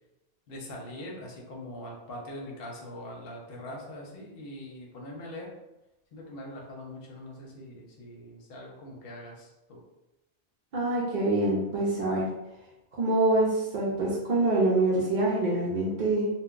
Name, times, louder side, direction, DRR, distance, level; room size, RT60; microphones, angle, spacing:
voice 1, 0.5-5.5 6.1-9.8, left 1 dB, 55° left, -1 dB, 0.8 m, -42 dB
voice 2, 10.7-12.3 12.9-16.3, right 2 dB, 55° right, -6 dB, 0.6 m, -25 dB
2.2 x 2.2 x 3.7 m, 0.98 s
omnidirectional pair, 1.2 m